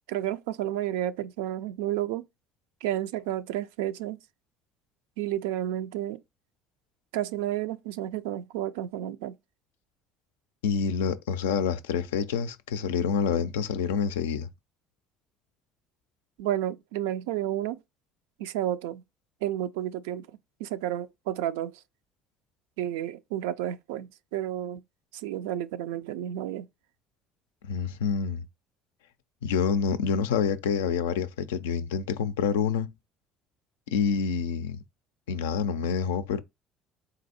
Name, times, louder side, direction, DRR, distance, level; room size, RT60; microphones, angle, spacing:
voice 1, 0.1-2.2 2.8-4.2 5.2-6.2 7.1-9.4 16.4-17.8 18.4-19.0 19.4-20.3 20.6-21.8 22.8-24.8 25.1-26.7, right 12 dB, 80° right, 0.3 m, -31 dB
voice 2, 10.6-14.5 27.7-28.4 29.4-32.9 33.9-34.8 35.3-36.4, left 6 dB, 85° left, 0.4 m, -27 dB
3.8 x 2.6 x 4.1 m
hypercardioid pair, 65°, 0 cm